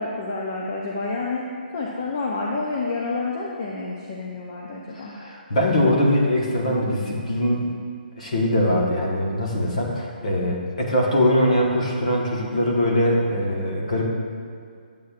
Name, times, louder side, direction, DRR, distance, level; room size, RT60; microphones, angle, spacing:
voice 1, 0.0-1.4 1.7-5.1, left 3 dB, 20° left, -2 dB, 0.4 m, -29 dB
voice 2, 4.9-7.6 8.2-14.1, left 1 dB, 45° left, -2 dB, 1.1 m, -22 dB
8.3 x 7.5 x 2.4 m, 2.2 s
hypercardioid pair, 175°, 5 cm